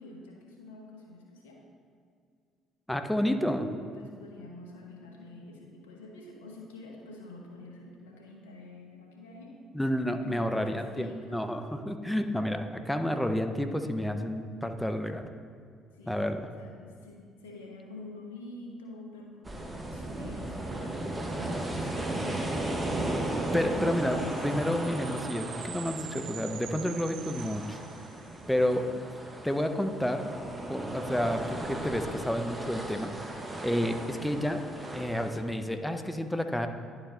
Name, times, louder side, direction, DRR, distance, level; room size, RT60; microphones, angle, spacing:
voice 1, 0.0-1.6 3.8-9.5 10.2-11.4 15.9-21.0 21.2-22.7 23.5-23.8, left 2 dB, 85° left, -1 dB, 1.2 m, -47 dB
voice 2, 2.9-3.7 9.7-15.3 16.1-16.5 23.5-27.8 28.5-29.0 29.4-30.3 30.7-33.1 33.6-34.6 34.9-36.7, equal, 5° left, 7 dB, 0.6 m, -30 dB
sound 1, 19.4-35.4, right 1 dB, 20° right, 1.1 m, -36 dB
sound 2, 23.8-28.4, right 13 dB, 70° right, 0.3 m, -46 dB
10.5 x 4.8 x 3.8 m, 2.2 s
hypercardioid pair, 55°, 0 cm